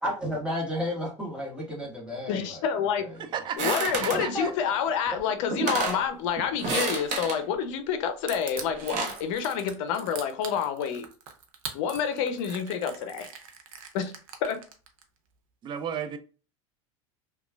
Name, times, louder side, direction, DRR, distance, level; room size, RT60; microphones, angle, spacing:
voice 1, 0.0-2.6 3.0-3.1 4.1-4.5, left 1 dB, 5° right, 1.4 m, -32 dB
voice 2, 2.3-3.1 3.6-11.1 11.7-13.3 13.9-14.1 14.4-14.6, left 7 dB, 65° left, 0.6 m, -28 dB
voice 3, 3.3-4.5 15.6-16.2, right 8 dB, 25° right, 0.4 m, -33 dB
sound 1, 3.6-4.3 5.2-5.3 5.5-6.0 6.6-7.4 8.6-9.2, right 3 dB, 45° right, 0.8 m, -29 dB
Crushing, 8.3-15.0, right 7 dB, 85° right, 0.6 m, -41 dB
2.9 x 2.3 x 2.3 m
hypercardioid pair, 105°, 17 cm